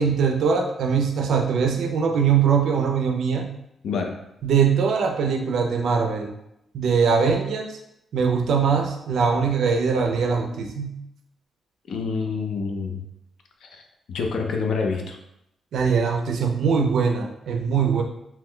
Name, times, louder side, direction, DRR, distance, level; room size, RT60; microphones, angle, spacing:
voice 1, 0.0-3.5 4.4-6.3 6.7-7.8 8.1-10.9 15.7-18.0, right 6 dB, 65° right, 3 dB, 0.4 m, -22 dB
voice 2, 3.8-4.2 11.9-13.0 13.6-13.8 14.1-15.2, left 4 dB, 60° left, 3 dB, 0.4 m, -27 dB
2.9 x 2.1 x 3.6 m, 0.82 s
wide cardioid pair, 180°, 0 cm